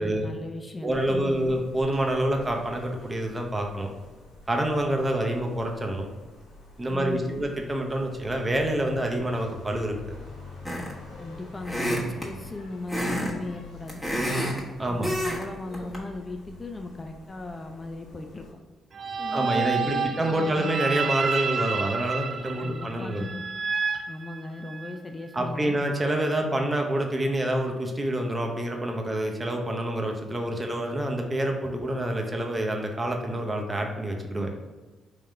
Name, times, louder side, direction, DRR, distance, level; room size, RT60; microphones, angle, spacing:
voice 1, 0.0-1.5 6.9-7.4 11.2-14.0 14.9-18.5 19.2-20.7 22.6-23.4 24.1-25.8, left 2 dB, 30° left, 5 dB, 0.4 m, -37 dB
voice 2, 0.8-3.9 4.5-6.0 6.8-10.2 14.8-15.1 19.3-23.2 25.3-34.5, right 1 dB, 25° right, 2 dB, 0.8 m, -27 dB
sound 1, 0.9-18.5, left 3 dB, 65° left, 1.5 m, -47 dB
sound 2, 10.6-11.1 11.6-12.3 12.9-13.3 13.6-14.6 15.0-15.4 15.7-16.0, equal, 5° left, 1.3 m, -28 dB
sound 3, 18.9-24.9, right 5 dB, 50° right, 0.4 m, -30 dB
3.6 x 3.1 x 3.3 m, 1.3 s
hypercardioid pair, 50°, 0 cm